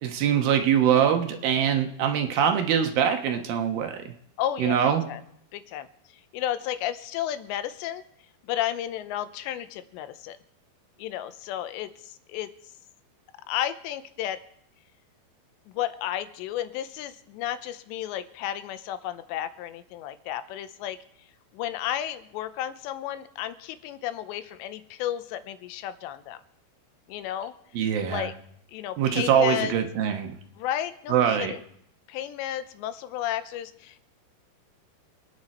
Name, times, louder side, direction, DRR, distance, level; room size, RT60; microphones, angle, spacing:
voice 1, 0.0-4.1 4.6-5.0 27.7-28.3 29.0-30.3 31.1-31.5, right 8 dB, 65° right, 5 dB, 2.7 m, -23 dB
voice 2, 4.4-5.2 5.5-5.9 6.3-8.0 8.4-10.4 11.0-12.5 13.5-14.4 15.7-21.0 21.5-26.4 27.1-27.5 28.0-28.3 28.7-29.7 30.6-31.6 32.1-34.0, left 12 dB, 85° left, 11 dB, 3.0 m, -32 dB
25.5 x 9.7 x 4.3 m, 0.71 s
omnidirectional pair, 5.0 m